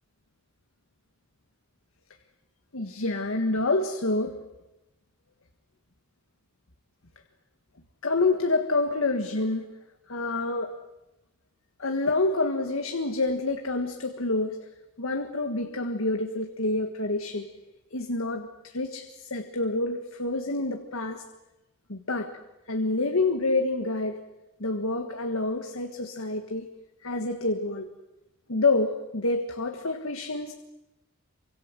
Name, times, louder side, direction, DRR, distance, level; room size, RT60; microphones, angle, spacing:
voice 1, 2.7-4.4 8.0-9.7 10.1-10.8 11.8-14.7 15.0-17.5 17.9-21.2 21.9-22.3 22.7-24.2 24.6-26.7 27.0-27.9 28.5-30.5, left 2 dB, 80° left, 5 dB, 1.6 m, -27 dB
27.5 x 25.0 x 7.7 m, 0.98 s
head